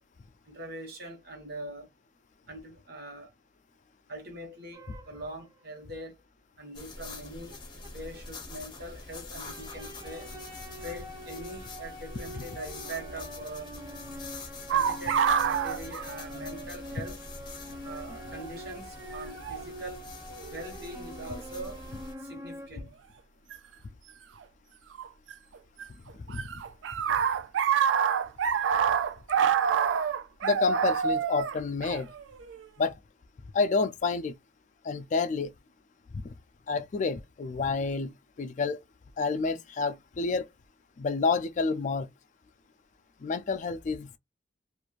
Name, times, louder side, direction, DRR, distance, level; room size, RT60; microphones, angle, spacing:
voice 1, 0.4-1.9 2.5-3.3 4.1-6.2 6.6-7.6 7.9-10.4 10.8-13.7 14.7-17.2 17.8-20.0 20.5-21.8 22.2-23.0, right 1 dB, 55° right, 1.2 m, -42 dB
sound 1, 4.7-5.6 7.5-7.6 7.8-7.9 8.1-8.2 8.5-8.6 9.5-22.7, equal, 20° right, 0.6 m, -45 dB
sound 2, 6.7-22.1, left 3 dB, 25° left, 0.8 m, -45 dB
sound 3, 14.7-16.8 17.1-17.2 18.1-18.4 19.4-19.6 20.4-20.9 23.5-23.6 25.0-25.8 26.1-32.7, right 7 dB, 75° right, 0.3 m, -27 dB
voice 2, 30.4-32.1 32.8-32.9 33.5-34.3 34.8-35.5 36.1-36.2 36.7-38.1 38.4-38.8 39.2-40.5 41.0-42.1 43.2-44.2, left 4 dB, 40° left, 0.4 m, -29 dB
3.0 x 2.5 x 2.4 m
head